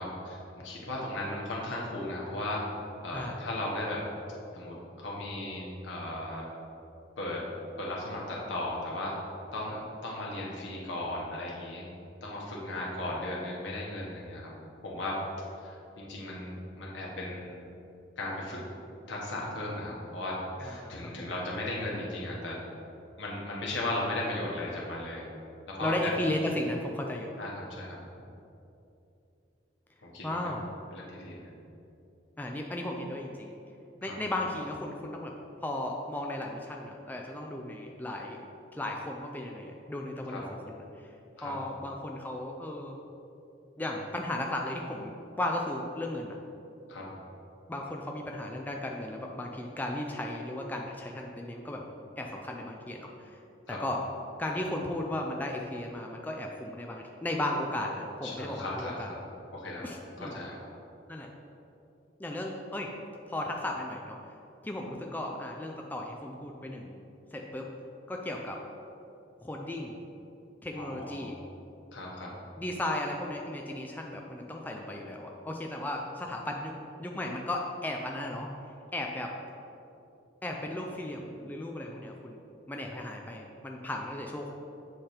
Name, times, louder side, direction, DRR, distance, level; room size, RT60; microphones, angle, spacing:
voice 1, 0.0-2.6 3.0-4.0 4.5-6.4 7.2-7.4 7.8-9.1 9.5-9.7 10.0-11.8 12.2-14.5 14.8-15.1 15.6-17.5 18.2-18.6 19.1-20.3 20.6-22.5 23.2-25.2 25.8-26.1 27.4-28.0 30.0-30.4 30.9-31.4 34.0-34.1 40.3-40.4 41.4-41.5 46.9-47.0 53.7-53.8 58.2-58.9 59.5-59.9 60.2-60.6 70.8-71.2 71.9-72.3, left 1 dB, 85° left, -4 dB, 1.3 m, -36 dB
voice 2, 20.6-21.3 25.8-27.3 30.2-30.7 32.4-33.6 34.0-35.3 35.6-38.4 38.7-40.8 41.4-43.0 43.8-46.3 47.7-51.8 52.2-53.1 53.7-54.0 54.4-59.1 59.8-60.4 61.1-61.3 62.2-62.9 63.3-64.2 64.6-66.9 67.3-67.7 68.1-68.6 69.4-70.0 70.6-71.4 72.6-76.7 77.0-78.5 78.9-79.3 80.4-82.4 82.7-84.5, left 1 dB, 10° left, 0 dB, 0.3 m, -35 dB
7.6 x 3.3 x 4.3 m, 2.7 s
head